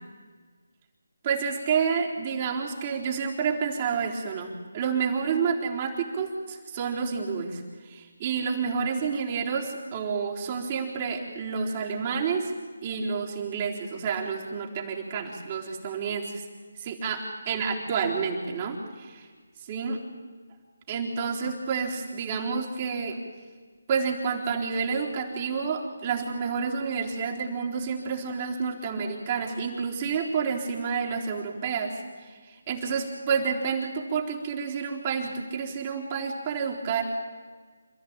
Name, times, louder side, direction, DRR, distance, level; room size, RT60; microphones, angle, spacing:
voice 1, 1.2-12.5 12.8-16.4 16.8-19.3 19.6-20.0 20.9-23.2 23.9-37.0, right 6 dB, 30° right, -1 dB, 4.0 m, -29 dB
27.5 x 14.5 x 8.9 m, 1.5 s
figure-of-eight pair, 155°, 0 cm